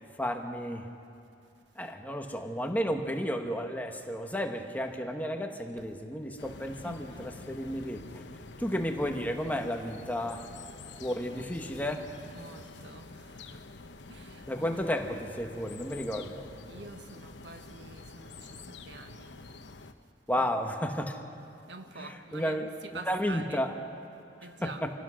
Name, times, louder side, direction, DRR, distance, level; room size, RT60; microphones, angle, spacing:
voice 1, 0.2-0.9 1.7-8.2 8.6-10.5 11.0-12.1 14.5-16.5 20.3-21.2 22.0-22.7 22.9-23.7 24.6-24.9, equal, 10° left, 4 dB, 1.2 m, -32 dB
sound 1, 6.4-19.9, left 3 dB, 85° left, 1.0 m, -47 dB
voice 2, 6.8-7.3 12.3-13.7 14.1-14.8 15.1-15.2 16.7-19.4 20.4-20.5 21.7-23.6 24.4-24.8, right 3 dB, 85° right, 7 dB, 1.4 m, -47 dB
26.0 x 17.0 x 6.4 m, 2.5 s
head